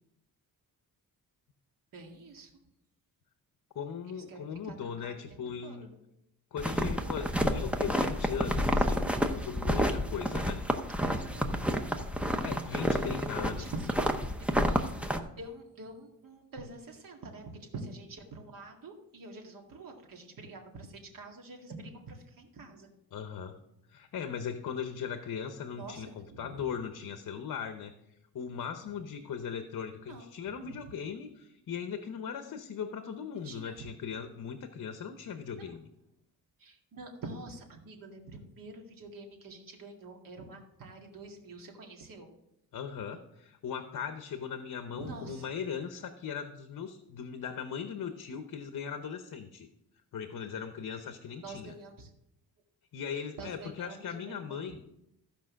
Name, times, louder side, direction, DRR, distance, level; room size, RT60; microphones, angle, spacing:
voice 1, 1.9-2.5 4.1-5.1 5.6-5.8 11.0-11.9 12.3-13.9 14.6-14.9 15.4-22.9 25.7-26.0 26.3-26.6 30.1-30.2 33.4-33.9 35.5-35.7 36.6-42.3 44.9-45.4 51.4-52.1 53.4-54.6, right 3 dB, 65° right, 2 dB, 2.1 m, -46 dB
voice 2, 3.7-5.9 6.5-10.6 12.4-13.7 23.1-23.6 23.9-27.9 28.3-35.9 42.7-49.7 50.1-51.8 52.9-54.8, left 7 dB, 60° left, 8 dB, 0.9 m, -39 dB
sound 1, 6.6-15.2, equal, 5° right, 0.7 m, -30 dB
15.0 x 5.2 x 6.3 m, 0.82 s
wide cardioid pair, 145°, 36 cm